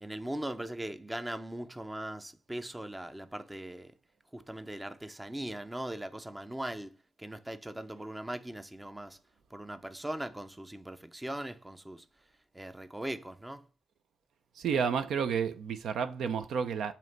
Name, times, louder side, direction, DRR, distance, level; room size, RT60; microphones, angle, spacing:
voice 1, 0.0-3.9 4.3-9.2 9.5-12.0 12.5-13.6, right 1 dB, 10° right, 0.5 m, -40 dB
voice 2, 14.6-16.9, right 6 dB, 75° right, 0.6 m, -31 dB
7.5 x 2.9 x 5.2 m
cardioid pair, 105°, 0 cm